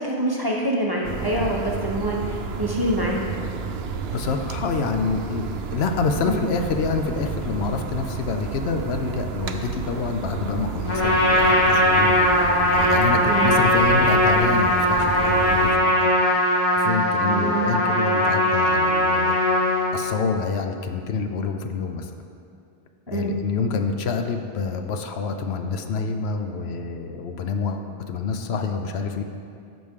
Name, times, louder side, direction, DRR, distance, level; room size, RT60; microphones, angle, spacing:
voice 1, 0.0-3.2 6.2-6.4 13.2-13.5 17.2-17.7 23.1-23.3, right 1 dB, 25° right, -2 dB, 0.7 m, -25 dB
sound 1, 1.0-15.8, right 5 dB, 70° right, 0.8 m, -31 dB
voice 2, 4.1-12.2 12.7-16.1 16.7-19.4 19.9-22.1 23.1-29.2, left 4 dB, 75° left, 6 dB, 0.8 m, -27 dB
Trumpet, 10.9-19.9, left 1 dB, 25° left, 1.7 m, -19 dB
11.0 x 6.1 x 3.6 m, 2.5 s
omnidirectional pair, 1.1 m